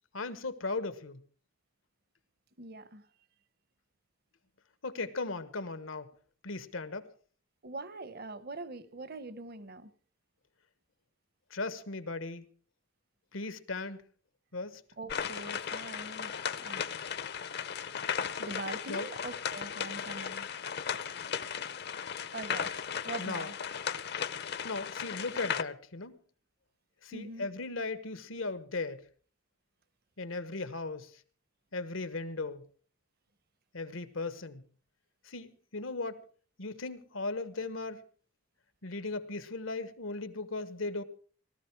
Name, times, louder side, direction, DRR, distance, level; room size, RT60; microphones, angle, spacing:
voice 1, 0.1-1.2 4.8-6.1 6.4-7.1 11.5-12.4 13.3-14.0 14.5-14.8 18.9-19.1 23.2-23.5 24.6-26.2 27.0-29.0 30.2-31.1 31.7-32.6 33.7-34.6 35.2-36.2 36.6-38.0 38.8-41.0, left 3 dB, 90° left, 13 dB, 1.3 m, -37 dB
voice 2, 2.6-3.1 7.6-9.9 15.0-17.0 18.4-20.5 22.3-23.6 27.1-27.5, right 2 dB, 50° right, 15 dB, 0.9 m, -43 dB
sound 1, 15.1-25.6, left 7 dB, 55° left, 0.7 m, -36 dB
18.0 x 14.0 x 4.6 m, 0.43 s
head